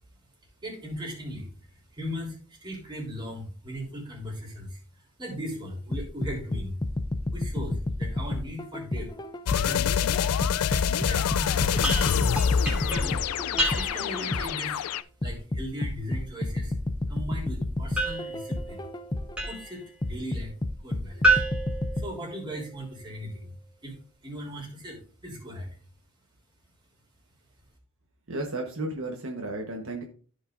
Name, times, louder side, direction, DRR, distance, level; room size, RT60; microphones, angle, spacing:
voice 1, 0.6-6.8 7.3-9.1 9.5-10.3 10.7-12.1 12.8-13.2 13.6-14.8 15.2-16.8 17.1-18.9 19.4-20.5 20.8-21.3 21.9-23.5 23.8-23.9 24.2-25.7, equal, 20° right, -2 dB, 3.4 m, -38 dB
sound 1, 5.9-9.9 10.4-14.7 15.2-19.5 20.0-22.1, left 1 dB, 20° left, 0.4 m, -31 dB
sound 2, 9.5-15.0, left 8 dB, 80° left, 0.4 m, -26 dB
sound 3, 11.8-14.2 18.0-19.8 21.2-22.7, right 1 dB, 5° right, 2.9 m, -29 dB
voice 2, 28.3-30.0, right 2 dB, 65° right, 2 dB, 1.2 m, -33 dB
14.5 x 5.3 x 2.5 m, 0.40 s
head